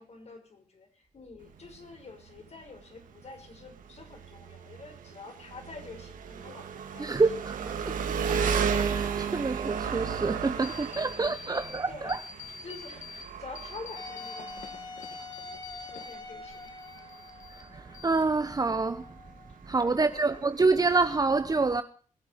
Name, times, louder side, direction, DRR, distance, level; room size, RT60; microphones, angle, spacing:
voice 1, 0.0-7.2 11.0-11.6 11.9-12.2 12.6-17.1 17.8-18.0 19.5-20.3, left 3 dB, 50° left, 5.6 m, -48 dB
Engine, 1.4-21.0, right 6 dB, 75° right, 2.2 m, -35 dB
voice 2, 7.0-12.2 17.5-19.2 19.6-21.8, right 3 dB, 30° right, 1.0 m, -27 dB
sound 1, 10.6-11.8 12.1-13.2 13.6-16.2 16.5-17.6 17.9-18.6, left 6 dB, 70° left, 1.9 m, -45 dB
Wind instrument woodwind instrument, 14.0-19.6, left 3 dB, 30° left, 3.3 m, -46 dB
21.0 x 8.1 x 5.2 m
cardioid pair, 60°, 14 cm